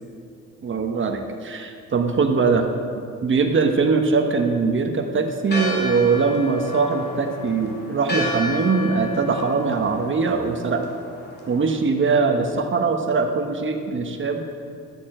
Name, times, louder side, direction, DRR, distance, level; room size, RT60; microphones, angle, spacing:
voice 1, 0.6-2.6 3.2-10.9 11.5-14.5, right 4 dB, 40° right, 5 dB, 1.2 m, -21 dB
Church bell, 5.5-11.8, left 1 dB, 35° left, 2.5 m, -32 dB
13.0 x 9.9 x 4.4 m, 2.4 s
cardioid pair, 90°, 30 cm